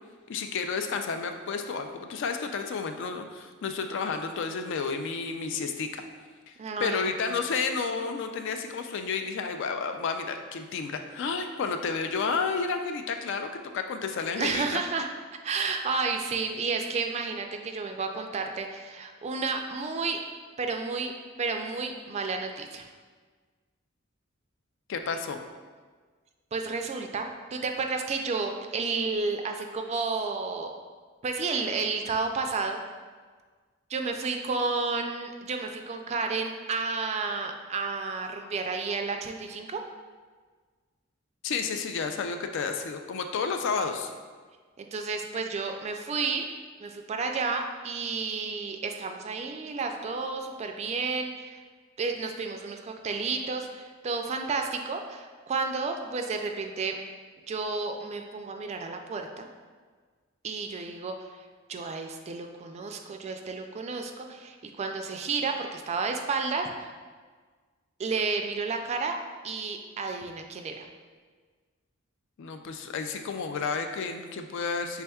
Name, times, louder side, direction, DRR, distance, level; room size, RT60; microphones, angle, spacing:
voice 1, 0.3-6.0 6.5-6.6 6.8-14.8 24.9-25.4 41.4-44.1 72.4-75.0, left 5 dB, 60° left, 6 dB, 0.4 m, -31 dB
voice 2, 6.6-7.1 14.4-15.1 15.4-20.2 20.6-21.1 21.4-22.8 26.5-30.8 31.2-32.8 33.9-39.8 44.8-46.4 46.8-51.6 52.0-57.0 57.5-59.5 60.4-66.9 68.0-69.2 69.4-70.9, right 4 dB, 35° right, 4 dB, 0.3 m, -31 dB
5.5 x 3.4 x 2.3 m, 1.5 s
head